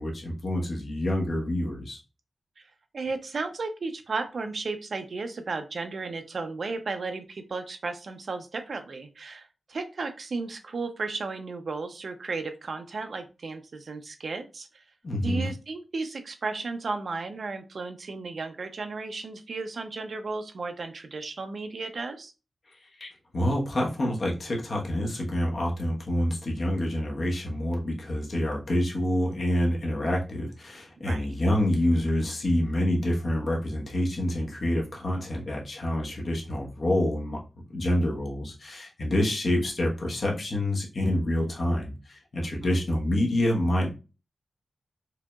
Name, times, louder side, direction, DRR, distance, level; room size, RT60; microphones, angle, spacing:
voice 1, 0.0-2.0 15.0-15.5 23.0-23.1 23.3-37.4 37.7-43.9, left 1 dB, 50° left, -2 dB, 1.1 m, -27 dB
voice 2, 2.9-14.8 15.2-22.3 31.0-31.3 42.4-42.8, right 3 dB, 60° right, 7 dB, 0.6 m, -34 dB
4.8 x 2.8 x 2.3 m, 0.30 s
wide cardioid pair, 145°, 0 cm